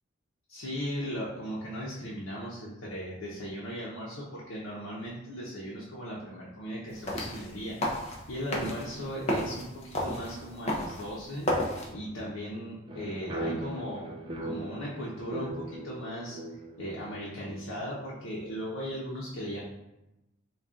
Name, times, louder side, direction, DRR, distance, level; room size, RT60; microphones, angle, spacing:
voice 1, 0.5-8.0 8.3-14.1 14.4-16.4 16.8-19.6, equal, 80° left, -6 dB, 0.8 m, -37 dB
sound 1, 6.9-11.9, left 1 dB, 35° left, 0.6 m, -33 dB
sound 2, 12.9-18.3, right 1 dB, 25° right, 0.4 m, -39 dB
3.9 x 2.3 x 3.6 m, 0.96 s
head